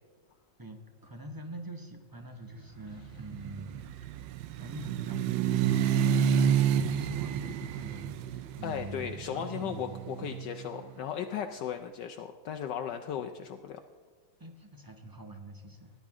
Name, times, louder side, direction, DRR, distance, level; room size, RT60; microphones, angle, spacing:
voice 1, 1.0-4.2 4.6-10.3 13.2-13.3 14.4-15.9, right 1 dB, 20° right, 4 dB, 0.5 m, -45 dB
sound 1, 2.9-10.9, right 8 dB, 80° right, 1.3 m, -30 dB
voice 2, 8.6-13.8, left 8 dB, 75° left, 6 dB, 1.2 m, -36 dB
17.5 x 10.5 x 3.6 m, 1.5 s
omnidirectional pair, 2.0 m